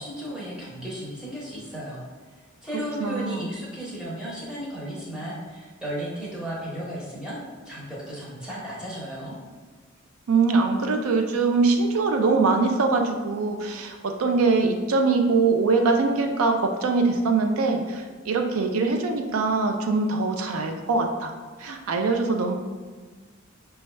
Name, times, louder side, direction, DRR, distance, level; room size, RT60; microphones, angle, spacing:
voice 1, 0.0-2.0 2.4-7.4 7.6-9.4, equal, 5° right, -7 dB, 0.9 m, -34 dB
voice 2, 3.0-3.5 10.3-21.3 21.6-22.5, right 3 dB, 85° right, 4 dB, 0.4 m, -23 dB
5.3 x 2.3 x 3.2 m, 1.4 s
head